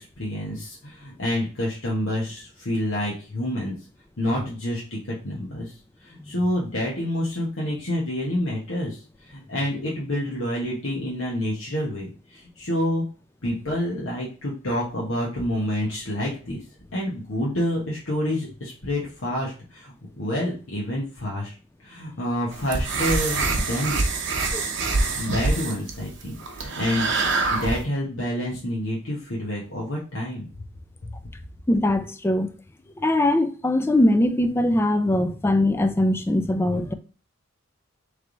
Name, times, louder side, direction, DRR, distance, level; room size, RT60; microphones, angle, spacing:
voice 1, 0.0-3.7 4.2-5.7 6.0-9.0 9.3-13.0 13.4-16.6 16.9-21.5 21.8-24.0 25.1-27.1 27.5-30.5 31.0-31.1, left 1 dB, 75° left, 1.2 m, -28 dB
sound 1, 22.5-27.8, right 3 dB, 55° right, 0.7 m, -25 dB
voice 2, 31.7-32.5 33.0-36.9, left 1 dB, 10° left, 0.3 m, -21 dB
3.3 x 3.2 x 3.9 m
head